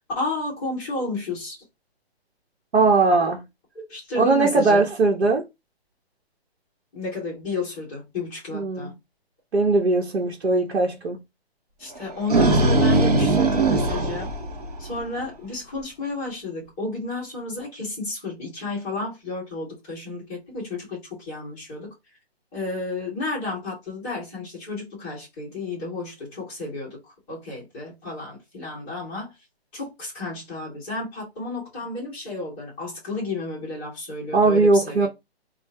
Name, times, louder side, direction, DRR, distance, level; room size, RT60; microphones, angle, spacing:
voice 1, 0.1-1.6 3.9-4.9 6.9-8.9 11.8-14.3 14.8-21.9 22.5-29.3 29.7-35.1, left 2 dB, 10° left, 1.0 m, -32 dB
voice 2, 2.7-3.4 4.2-5.4 8.5-8.9 9.5-11.2 34.3-35.1, right 3 dB, 85° right, 1.3 m, -19 dB
sound 1, 12.0-15.2, right 2 dB, 35° right, 1.0 m, -20 dB
4.7 x 2.5 x 3.2 m
hypercardioid pair, 180°, 32 cm